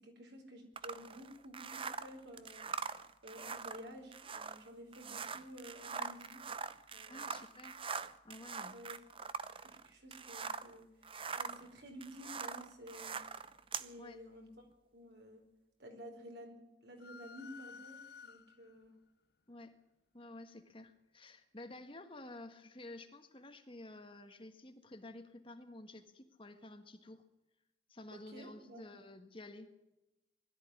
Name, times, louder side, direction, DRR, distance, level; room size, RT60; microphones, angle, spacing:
voice 1, 0.0-2.6 3.2-6.4 6.9-7.4 8.7-9.0 9.7-13.2 13.8-14.5 14.9-15.4 15.8-16.6 16.8-18.9 28.1-28.9, equal, 60° right, 4 dB, 4.8 m, -52 dB
sound 1, 0.8-10.7 11.0-13.9, right 5 dB, 30° right, 0.7 m, -43 dB
voice 2, 7.1-7.9 8.2-8.7 14.0-14.2 19.5-19.7 20.1-27.2 27.9-29.7, left 2 dB, 30° left, 7 dB, 1.6 m, -51 dB
sound 2, 17.0-18.8, left 6 dB, 55° left, 0.7 m, -53 dB
20.5 x 13.5 x 9.8 m, 0.94 s
head